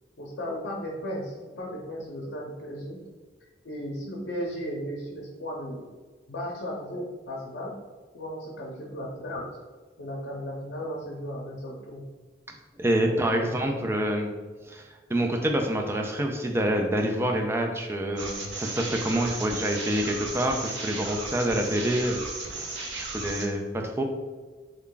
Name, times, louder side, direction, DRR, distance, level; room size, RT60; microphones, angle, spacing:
voice 1, 0.2-3.0 3.6-5.9 6.3-7.8 8.1-9.5 10.0-12.0 13.0-13.8, equal, 75° left, -3 dB, 0.6 m, -35 dB
voice 2, 12.8-14.3 14.7-22.2 22.9-24.0, right 1 dB, 15° right, 3 dB, 0.3 m, -27 dB
sound 1, 18.2-23.5, right 3 dB, 70° right, 0.6 m, -35 dB
3.4 x 2.2 x 3.8 m, 1.3 s
head